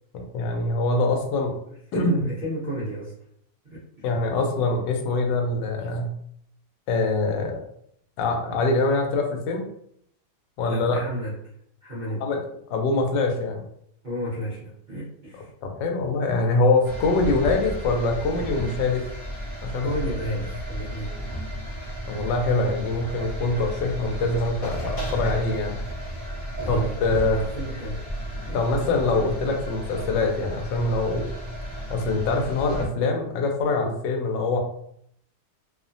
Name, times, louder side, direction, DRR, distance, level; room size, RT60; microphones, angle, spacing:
voice 1, 0.1-1.6 1.9-2.2 4.0-6.1 6.9-7.6 8.2-9.7 10.6-11.0 12.2-12.4 12.7-13.6 15.6-19.1 19.6-19.9 22.1-25.8 26.7-27.4 28.5-31.3 31.9-34.6, left 3 dB, 90° left, 3 dB, 1.3 m, -24 dB
voice 2, 1.9-3.1 3.6-4.0 10.7-11.4 11.8-12.2 14.0-15.5 19.8-21.2 22.1-22.2 26.6-28.0 28.4-28.9, right 1 dB, 45° right, -9 dB, 0.6 m, -32 dB
sound 1, 16.8-32.9, equal, 30° left, 0.5 m, -33 dB
3.0 x 2.1 x 2.5 m, 0.69 s
omnidirectional pair, 1.9 m